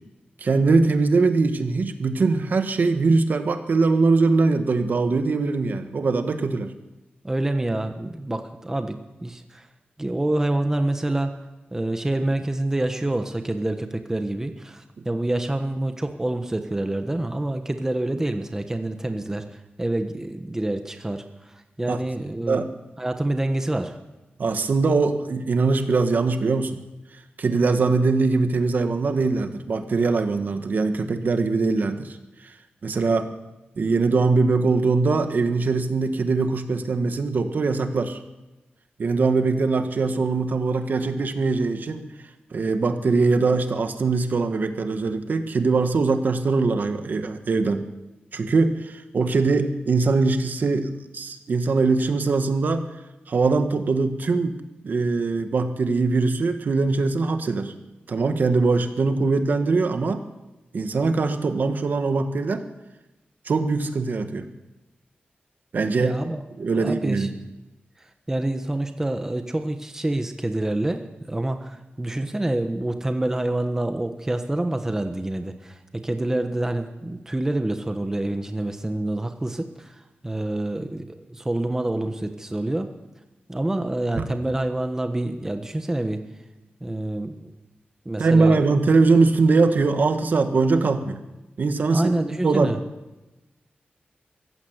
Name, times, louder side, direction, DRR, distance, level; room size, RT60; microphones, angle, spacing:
voice 1, 0.4-6.7 21.9-22.0 22.5-22.7 24.4-26.8 27.4-32.2 32.8-33.3 33.8-38.2 39.0-42.0 42.5-47.9 48.3-52.9 53.3-54.6 54.8-57.7 58.1-60.2 60.7-62.6 63.4-64.5 65.7-66.1 66.6-67.3 84.2-84.3 88.2-91.2 91.6-92.1 92.4-92.8, right 3 dB, 55° right, 8 dB, 1.6 m, -22 dB
voice 2, 7.2-9.7 10.0-11.3 11.7-19.4 19.8-22.6 23.0-24.0 66.0-66.4 66.7-67.4 68.3-82.9 83.5-86.2 86.8-87.5 88.0-88.7 91.9-92.8, right 1 dB, 15° right, 7 dB, 1.2 m, -27 dB
24.0 x 15.0 x 8.1 m, 1.1 s
wide cardioid pair, 160°, 4 cm